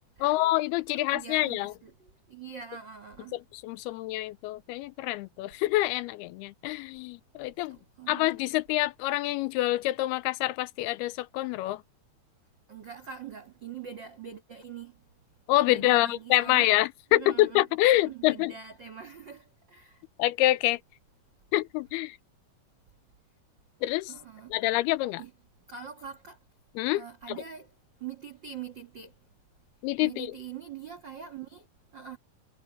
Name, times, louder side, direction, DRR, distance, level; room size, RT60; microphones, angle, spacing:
voice 1, 0.2-1.7 3.3-7.8 8.1-11.8 15.5-18.5 20.2-20.8 21.5-22.2 23.8-24.1 24.5-25.2 26.8-27.0 29.8-30.3, left 17 dB, 85° left, 2.5 m, -26 dB
voice 2, 0.9-3.4 7.7-8.4 12.7-15.0 15.7-16.7 17.1-17.6 17.9-20.0 24.1-24.7 25.2-25.3 25.7-26.4 26.9-27.7 28.0-29.1 30.0-31.7 31.9-32.2, right 7 dB, 70° right, 1.0 m, -43 dB
omnidirectional pair, 4.7 m